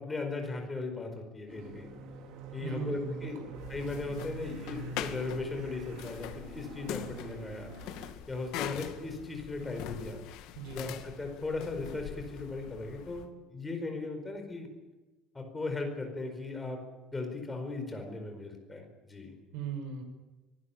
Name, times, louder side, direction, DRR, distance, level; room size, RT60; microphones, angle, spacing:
voice 1, 0.0-1.9 2.5-3.3 3.7-7.7 8.3-10.2 10.7-14.7 15.3-16.8 17.1-19.4, left 3 dB, 10° left, 4 dB, 4.6 m, -37 dB
sound 1, 1.5-8.1, right 4 dB, 65° right, 4.1 m, -45 dB
voice 2, 2.6-3.5 10.5-10.8 19.5-20.0, right 5 dB, 80° right, 6 dB, 6.4 m, -38 dB
sound 2, 3.5-13.3, left 11 dB, 65° left, 2.2 m, -43 dB
25.5 x 19.5 x 8.6 m, 1.2 s
cardioid pair, 175°, 0 cm